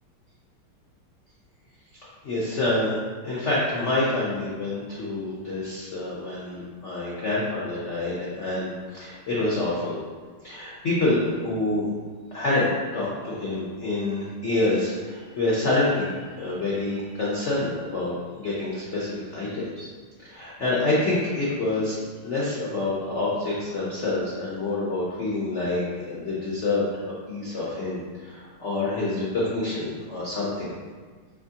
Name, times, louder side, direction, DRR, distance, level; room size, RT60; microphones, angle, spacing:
voice 1, 2.2-10.0 10.4-11.9 12.3-19.9 20.2-22.0 22.2-30.7, left 2 dB, 75° left, -6 dB, 0.6 m, -27 dB
4.8 x 3.4 x 2.8 m, 1.5 s
omnidirectional pair, 2.3 m